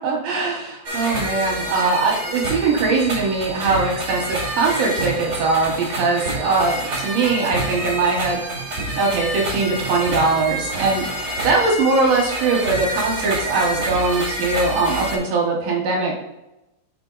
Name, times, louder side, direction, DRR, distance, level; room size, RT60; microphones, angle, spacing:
voice 1, 0.0-8.4 9.0-11.0 11.4-16.2, right 3 dB, 65° right, -2 dB, 2.6 m, -21 dB
sound 1, 0.8-15.2, right 1 dB, 35° right, 1.9 m, -28 dB
7.0 x 4.4 x 3.9 m, 0.92 s
omnidirectional pair, 5.4 m